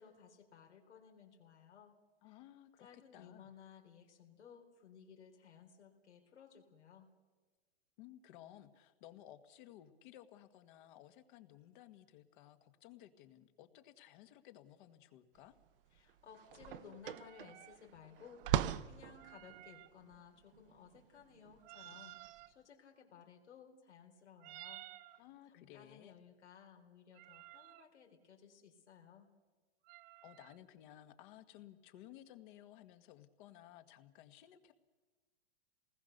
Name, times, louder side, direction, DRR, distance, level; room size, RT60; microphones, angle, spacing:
voice 1, 0.0-2.0 2.2-2.4 2.8-7.1 15.9-29.3, left 7 dB, 85° left, 1 dB, 4.2 m, -59 dB
voice 2, 2.2-2.9 3.1-3.5 8.0-15.5 25.2-26.2 30.2-34.7, left 12 dB, 45° left, 10 dB, 1.8 m, -57 dB
sound 1, 15.5-15.6 16.0-22.4, right 11 dB, 55° right, 0.9 m, -40 dB
sound 2, 17.0-17.8 19.1-19.9 21.6-22.5 24.4-25.2 27.1-27.9 29.8-30.6, right 16 dB, 25° right, 0.6 m, -54 dB
28.5 x 19.5 x 6.7 m, 1.3 s
hypercardioid pair, 140°, 34 cm